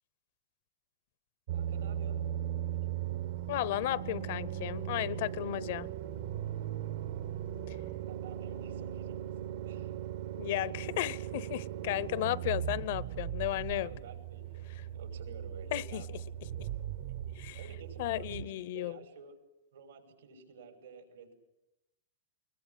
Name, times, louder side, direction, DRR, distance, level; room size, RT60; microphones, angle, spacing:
sound 1, 1.5-18.4, right 10 dB, 70° right, 1.3 m, -38 dB
voice 1, 1.5-2.2 8.1-9.9 13.7-16.1 17.5-19.4 19.7-21.3, right 6 dB, 85° right, 6.0 m, -52 dB
voice 2, 3.5-5.9 7.7-7.8 10.4-14.0 15.7-16.0 17.3-17.6 18.0-19.0, left 15 dB, 60° left, 0.8 m, -34 dB
21.5 x 21.0 x 9.9 m
supercardioid pair, 140°, 0 cm